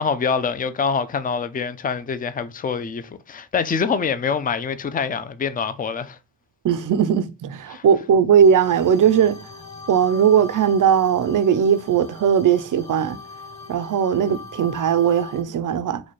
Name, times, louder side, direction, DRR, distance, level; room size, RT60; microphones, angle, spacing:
voice 1, 0.0-6.2 7.7-7.8, left 6 dB, 20° left, 0.4 m, -25 dB
voice 2, 6.6-9.4 9.9-13.2 13.7-16.0, right 8 dB, 50° right, 0.4 m, -18 dB
sound 1, 8.4-15.4, left 4 dB, 40° left, 1.2 m, -41 dB
4.2 x 2.2 x 3.1 m
cardioid pair, 70°, 42 cm